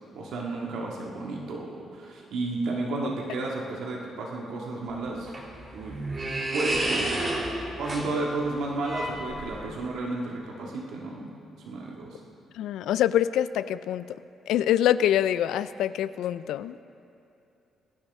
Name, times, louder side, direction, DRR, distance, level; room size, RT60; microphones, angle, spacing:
voice 1, 0.1-5.3 5.7-6.0 6.5-7.2 7.8-11.3 11.7-12.2, right 2 dB, 80° right, -2 dB, 1.9 m, -32 dB
sound 1, 4.9-9.9, right 1 dB, 35° right, 2.6 m, -31 dB
voice 2, 12.5-14.1 14.5-16.8, left 11 dB, 85° left, 14 dB, 0.4 m, -25 dB
23.0 x 10.5 x 3.6 m, 2.8 s
cardioid pair, 90°, 0 cm